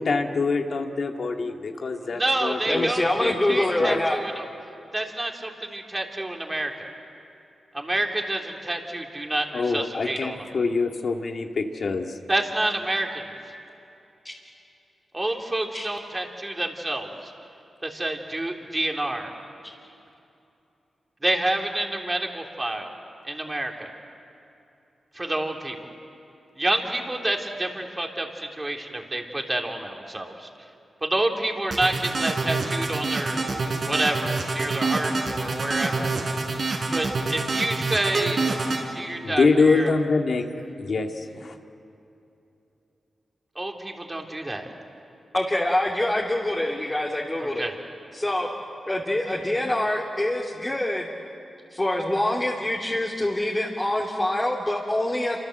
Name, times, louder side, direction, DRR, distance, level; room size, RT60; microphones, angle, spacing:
voice 1, 0.0-2.9 3.2-4.0 9.5-12.1 39.2-40.4 40.8-41.1 41.4-41.5, left 4 dB, 65° left, 3 dB, 2.0 m, -24 dB
voice 2, 2.0-4.5 4.9-6.9 7.7-10.5 12.3-13.3 15.1-17.3 17.8-19.3 21.2-22.9 23.2-23.9 25.1-25.8 26.6-30.5 31.0-33.4 33.9-36.1 36.9-39.9 43.5-44.7 47.4-47.7, right 1 dB, 20° right, 2 dB, 3.4 m, -28 dB
voice 3, 2.7-4.2 14.2-14.3 15.7-15.9 45.3-47.7 48.1-48.5 48.9-51.1 51.7-55.4, left 1 dB, 20° left, -3 dB, 3.0 m, -25 dB
sound 1, 31.7-38.8, right 3 dB, 60° right, 4.7 m, -26 dB
28.0 x 26.0 x 8.0 m, 2.7 s
cardioid pair, 70°, 0 cm